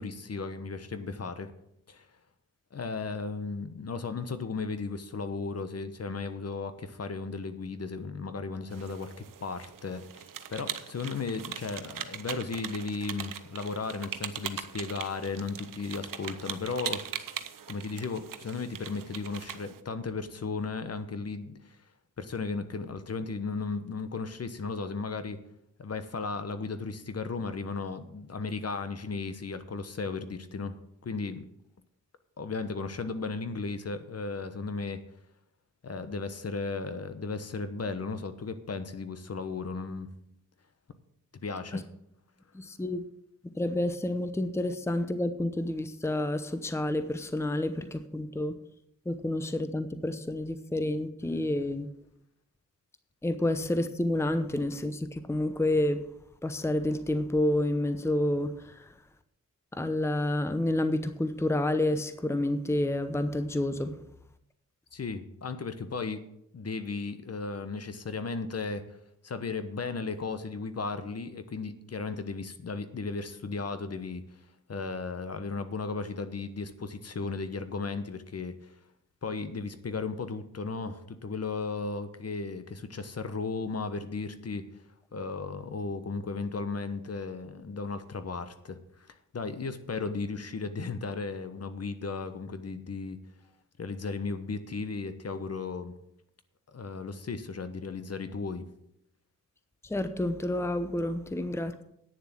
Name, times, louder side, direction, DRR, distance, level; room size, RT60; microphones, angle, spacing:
voice 1, 0.0-1.5 1.9-2.1 2.7-9.1 9.4-17.2 17.7-21.8 22.2-25.4 25.8-30.8 31.0-31.4 32.4-35.0 35.8-40.1 41.4-41.8 64.9-66.3 66.5-68.8 69.2-74.2 74.7-78.6 79.2-84.8 85.1-89.1 89.3-93.2 93.8-95.9 96.7-98.6, left 4 dB, 50° left, 1.1 m, -35 dB
sound 1, 8.7-19.8, right 9 dB, 75° right, 0.8 m, -40 dB
voice 2, 42.5-43.0 43.5-48.5 49.0-51.9 53.2-56.0 56.4-58.9 59.7-64.0 99.8-101.8, left 1 dB, 10° left, 0.8 m, -29 dB
9.5 x 7.0 x 7.4 m
cardioid pair, 65°, 32 cm